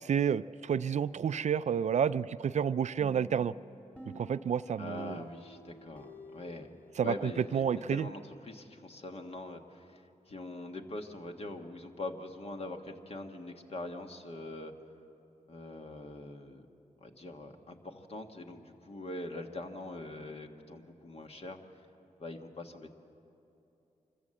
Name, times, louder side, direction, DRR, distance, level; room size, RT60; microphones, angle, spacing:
voice 1, 0.0-3.5 4.1-5.2 7.0-8.1, right 8 dB, 55° right, 15 dB, 0.4 m, -30 dB
sound 1, 3.0-7.7, equal, 10° left, 2.5 m, -52 dB
voice 2, 4.8-6.7 7.0-14.7 15.5-16.7 17.0-21.6 22.2-22.9, left 2 dB, 45° left, 4 dB, 1.6 m, -43 dB
25.0 x 14.5 x 7.7 m, 2.8 s
cardioid pair, 75°, 14 cm